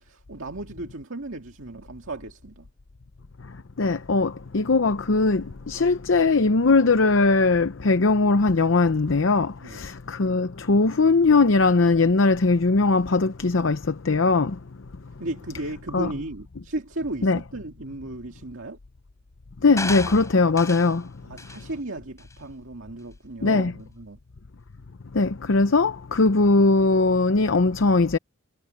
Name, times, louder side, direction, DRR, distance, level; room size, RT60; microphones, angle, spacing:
voice 1, 0.0-2.7 9.6-9.9 15.2-18.8 21.3-24.2, right 2 dB, 70° right, 2.1 m, -35 dB
voice 2, 3.4-14.6 15.9-16.1 17.2-17.4 19.6-21.1 23.4-23.7 25.1-28.2, left 3 dB, 65° left, 0.7 m, -20 dB
sound 1, 19.8-21.0 21.4-21.6 22.2-22.3, left 3 dB, 15° left, 6.7 m, -33 dB
head